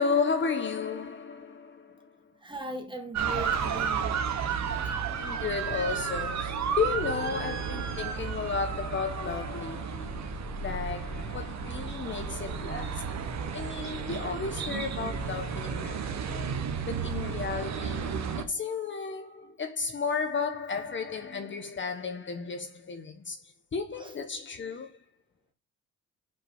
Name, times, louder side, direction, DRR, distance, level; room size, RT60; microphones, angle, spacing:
voice 1, 0.0-2.3 5.1-25.0, left 5 dB, 40° left, 1.1 m, -33 dB
voice 2, 2.4-5.3 7.3-7.5 19.4-19.5 21.2-21.6 24.0-24.1, right 1 dB, 15° right, 2.0 m, -41 dB
sound 1, 3.1-18.4, right 6 dB, 65° right, 1.3 m, -33 dB
5.8 x 4.8 x 5.0 m
cardioid pair, 90°, 30 cm